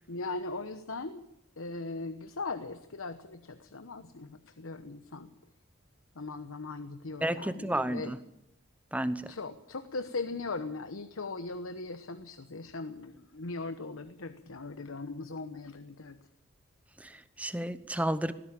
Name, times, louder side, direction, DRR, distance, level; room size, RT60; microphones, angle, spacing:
voice 1, 0.1-1.2 1.6-5.3 6.2-8.1 9.3-16.2, left 3 dB, 80° left, 10 dB, 1.1 m, -39 dB
voice 2, 7.2-8.2 8.9-9.2 17.0-18.3, right 1 dB, 5° right, 13 dB, 0.9 m, -31 dB
19.0 x 15.5 x 8.9 m, 0.81 s
head